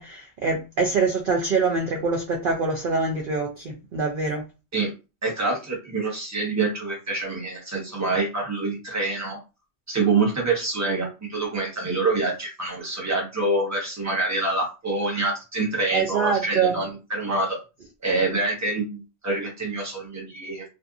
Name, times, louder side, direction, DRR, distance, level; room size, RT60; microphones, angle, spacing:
voice 1, 0.0-4.4 15.9-16.8, right 4 dB, 60° right, 0.6 m, -24 dB
voice 2, 5.2-9.4 9.9-17.6 18.0-20.6, right 3 dB, 15° right, 0.9 m, -26 dB
2.6 x 2.5 x 2.4 m
omnidirectional pair, 1.2 m